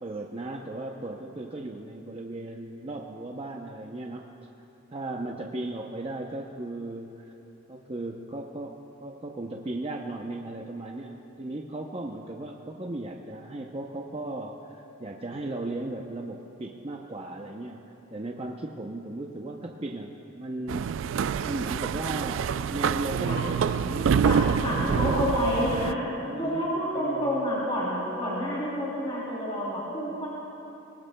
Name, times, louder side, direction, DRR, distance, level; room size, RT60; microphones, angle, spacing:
voice 1, 0.0-4.3 4.9-7.3 7.7-8.8 9.0-17.8 18.1-21.1 21.4-24.1 24.7-25.1 25.5-26.7 26.9-27.3, right 2 dB, 30° right, 1 dB, 0.6 m, -36 dB
sound 1, 20.7-25.9, right 6 dB, 70° right, 0.3 m, -26 dB
voice 2, 24.2-26.0 26.4-30.3, equal, 30° left, -7 dB, 3.0 m, -28 dB
23.0 x 19.5 x 2.2 m, 3.0 s
head